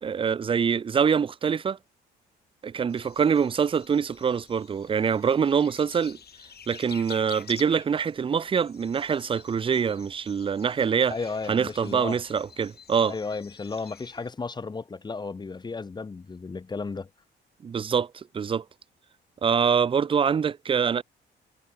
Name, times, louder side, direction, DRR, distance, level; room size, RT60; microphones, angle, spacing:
voice 1, 0.0-1.8 2.6-6.2 6.7-11.2 11.5-13.1 17.6-18.6 19.4-21.0, right 6 dB, 25° right, 0.4 m, -25 dB
sound 1, 2.9-14.3, left 8 dB, 55° left, 7.1 m, -49 dB
voice 2, 11.1-12.2 13.1-17.1, left 4 dB, 20° left, 0.7 m, -34 dB
cardioid pair, 90°, 20 cm